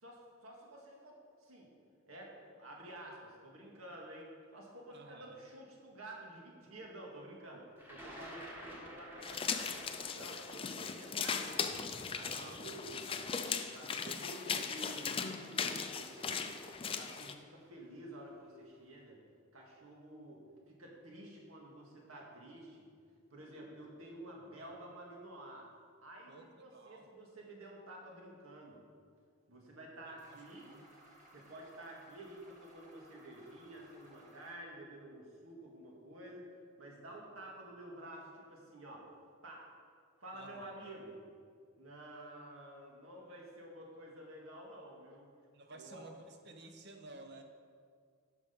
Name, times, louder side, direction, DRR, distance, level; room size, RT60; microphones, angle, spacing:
voice 1, 0.0-1.7 2.1-9.8 10.1-11.8 12.1-13.2 13.7-16.6 17.0-19.2 19.5-22.9 23.3-25.7 26.0-28.8 29.5-30.7 31.3-36.5 36.8-39.0 39.4-39.7 40.2-41.2 41.8-45.3 45.7-46.0, right 1 dB, 85° right, -2 dB, 2.0 m, -51 dB
voice 2, 4.9-5.4 12.2-12.9 26.3-27.1 30.1-30.8 40.3-40.7 45.5-47.4, right 2 dB, 55° right, 5 dB, 0.9 m, -54 dB
Thunder, 7.8-13.8 14.7-14.8 15.9-16.2 16.5-17.0, equal, 10° right, 1.3 m, -52 dB
sound 1, 9.2-17.3, left 6 dB, 25° left, 0.4 m, -38 dB
sound 2, 30.2-34.6, right 1 dB, 35° right, 1.7 m, -61 dB
10.5 x 6.3 x 5.3 m, 2.1 s
head